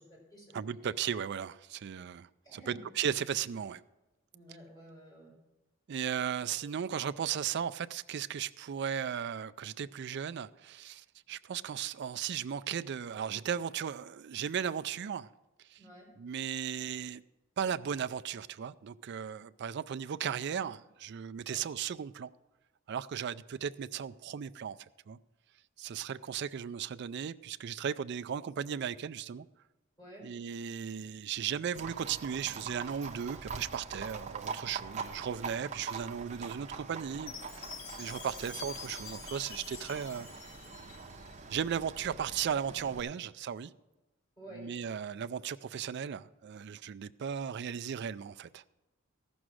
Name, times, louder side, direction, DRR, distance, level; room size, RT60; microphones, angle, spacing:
voice 1, 0.0-0.8 2.4-2.8 4.3-5.3 6.6-6.7 15.8-16.1 21.4-21.6 30.0-30.3 44.4-44.6, right 1 dB, 20° left, 4.8 m, -51 dB
voice 2, 0.5-3.8 5.9-15.3 15.7-15.8 16.2-17.2 17.6-22.3 22.9-24.8 25.1-25.2 25.8-29.5 30.2-37.7 38.0-40.3 41.5-43.7 44.5-48.6, right 8 dB, 55° right, 0.4 m, -36 dB
Livestock farm animals working animals, 31.7-43.0, right 5 dB, 35° right, 0.8 m, -44 dB
Chime, 37.3-41.4, left 6 dB, 75° left, 0.9 m, -47 dB
14.0 x 6.2 x 6.2 m
head